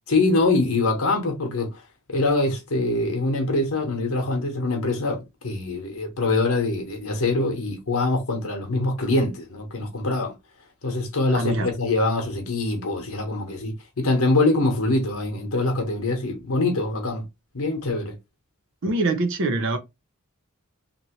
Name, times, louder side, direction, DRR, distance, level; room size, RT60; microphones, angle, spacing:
voice 1, 0.1-1.7 2.1-10.3 10.8-17.2 17.5-18.1, left 2 dB, 75° left, 1.0 m, -24 dB
voice 2, 11.3-11.7 18.8-19.8, right 2 dB, 60° right, 0.6 m, -23 dB
2.9 x 2.7 x 2.9 m
head